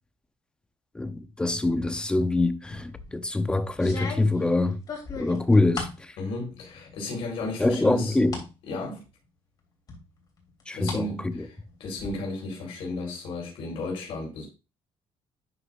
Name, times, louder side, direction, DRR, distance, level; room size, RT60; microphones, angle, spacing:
voice 1, 0.9-4.8 5.1-6.2 7.6-8.4 10.7-11.5, left 2 dB, 10° left, 0.7 m, -24 dB
sound 1, 2.7-3.1 3.8-6.0 6.5-7.0 7.4-8.5 8.9-9.0 9.9-11.0 11.3-12.1, left 4 dB, 40° left, 3.1 m, -38 dB
voice 2, 6.2-8.2 8.7-9.0 10.7-11.5 11.8-14.5, left 2 dB, 65° left, 4.1 m, -34 dB
11.0 x 6.5 x 2.5 m
cardioid pair, 155°, 10 cm